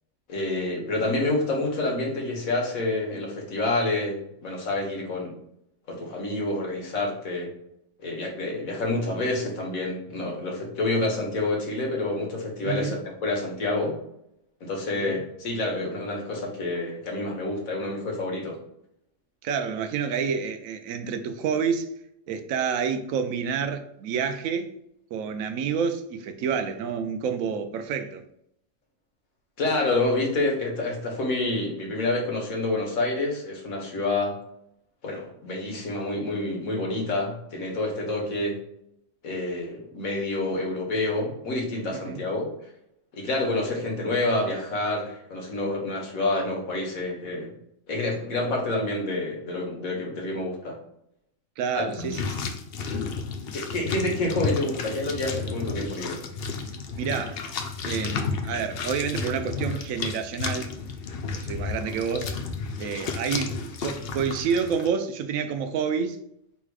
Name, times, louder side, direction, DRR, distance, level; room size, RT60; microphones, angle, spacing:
voice 1, 0.3-5.4 5.9-7.5 8.0-14.0 14.6-18.6 29.6-34.3 35.0-38.6 39.2-42.5 43.1-47.5 47.9-50.8 51.8-52.1 53.5-56.2, left 2 dB, 85° left, 1.7 m, -28 dB
voice 2, 12.6-13.0 14.9-15.2 19.4-21.9 22.3-24.7 25.1-28.2 41.9-42.2 51.6-52.4 57.0-57.4 57.8-60.7 61.3-62.3 62.8-66.2, right 6 dB, 80° right, 1.0 m, -29 dB
sound 1, 51.9-64.9, left 4 dB, 60° left, 0.7 m, -32 dB
4.7 x 4.1 x 2.4 m
omnidirectional pair, 1.4 m